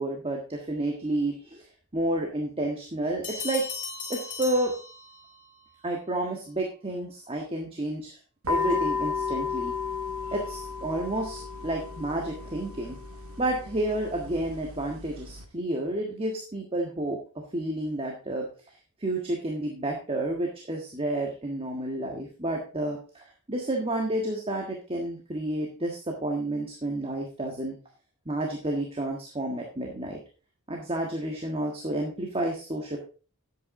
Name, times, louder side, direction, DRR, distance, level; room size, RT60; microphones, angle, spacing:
voice 1, 0.0-3.6 4.1-4.7 5.8-8.2 8.5-9.7 10.2-13.0 13.4-17.2 17.5-27.7 28.2-30.2 30.7-33.0, right 1 dB, 25° right, 0 dB, 1.5 m, -30 dB
sound 1, 3.2-5.5, left 5 dB, 40° left, 2.5 m, -37 dB
sound 2, 8.4-15.4, left 5 dB, 70° right, 1.9 m, -33 dB
11.0 x 8.2 x 3.7 m, 0.35 s
head